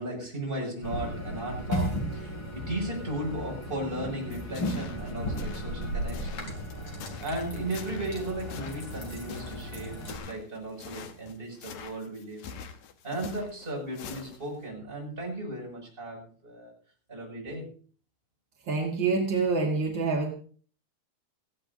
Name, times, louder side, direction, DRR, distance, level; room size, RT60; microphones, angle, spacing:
voice 1, 0.0-6.5 7.2-12.4 13.0-16.7 17.1-17.7, right 1 dB, 10° right, -3 dB, 6.3 m, -36 dB
sound 1, 0.8-10.2, equal, 30° left, 3.3 m, -35 dB
sound 2, 4.3-14.6, left 7 dB, 85° left, 1.6 m, -45 dB
voice 2, 18.6-20.3, right 4 dB, 60° right, 1 dB, 1.2 m, -26 dB
18.5 x 15.5 x 2.8 m, 0.43 s
omnidirectional pair, 4.9 m